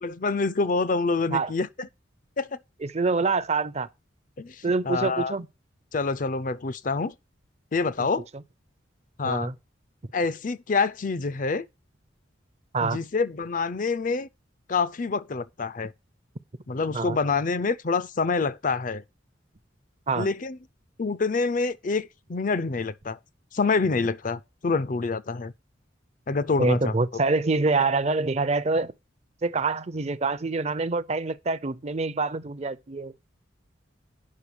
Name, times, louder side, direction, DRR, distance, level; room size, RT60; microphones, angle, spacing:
voice 1, 0.0-1.9 2.4-2.6 4.4-5.4 5.9-7.1 7.7-8.3 9.2-9.5 10.1-11.7 12.8-14.3 14.7-15.9 16.7-19.0 20.2-20.6 21.0-23.2 23.5-25.5 26.3-27.0, left 4 dB, 45° left, 0.5 m, -26 dB
voice 2, 2.8-3.9 4.6-5.5 8.0-8.1 9.2-9.6 12.7-13.0 16.9-17.2 20.1-20.3 26.6-28.9 29.4-33.1, right 3 dB, 35° right, 0.6 m, -26 dB
8.4 x 5.7 x 6.2 m
head